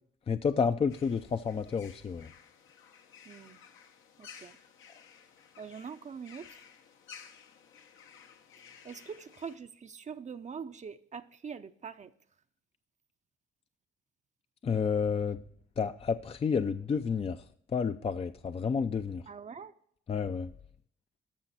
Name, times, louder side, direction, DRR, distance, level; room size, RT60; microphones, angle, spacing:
voice 1, 0.3-2.3 14.6-15.4 15.8-17.4 17.7-19.2 20.1-20.5, left 6 dB, 30° left, 10 dB, 0.4 m, -30 dB
sound 1, 0.9-9.6, left 7 dB, 80° left, 1.1 m, -55 dB
voice 2, 3.2-3.6 4.2-4.6 5.6-6.6 8.8-12.1 19.3-19.7, right 6 dB, 35° right, 9 dB, 0.6 m, -43 dB
13.5 x 5.7 x 4.2 m, 0.66 s
cardioid pair, 90°, 20 cm